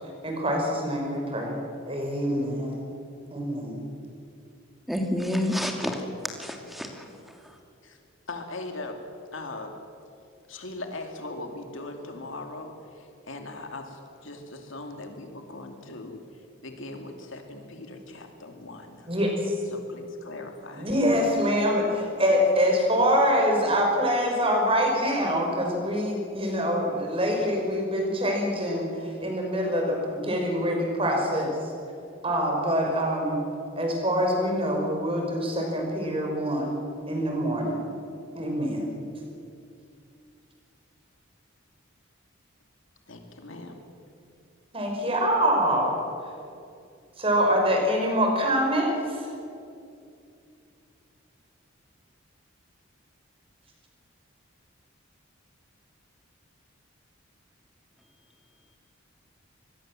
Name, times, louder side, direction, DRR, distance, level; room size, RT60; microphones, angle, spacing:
voice 1, 0.2-1.5 1.9-2.8 3.3-3.8 19.1-19.5 20.7-31.7 32.2-33.4 33.8-36.8 37.0-37.8 38.3-38.9 44.7-46.0 47.2-49.3, equal, 25° right, 1 dB, 5.5 m, -25 dB
voice 2, 4.9-6.0 6.4-7.0, left 1 dB, ahead, 3 dB, 2.5 m, -28 dB
voice 3, 8.3-9.0 9.3-9.8 10.5-16.2 16.6-19.1 19.7-20.9 43.1-43.8, left 2 dB, 70° left, 4 dB, 2.6 m, -40 dB
25.5 x 21.0 x 7.6 m, 2.6 s
head